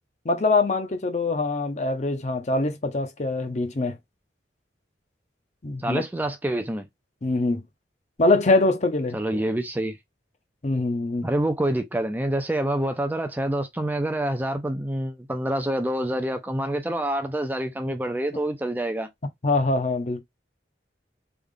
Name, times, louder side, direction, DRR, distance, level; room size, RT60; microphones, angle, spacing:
voice 1, 0.2-4.0 5.6-6.0 7.2-7.6 8.2-9.4 10.6-11.3 19.4-20.2, left 2 dB, 40° left, 0.6 m, -23 dB
voice 2, 5.8-6.9 9.1-9.9 11.2-19.1, right 1 dB, 10° right, 0.4 m, -27 dB
3.4 x 2.4 x 3.6 m
head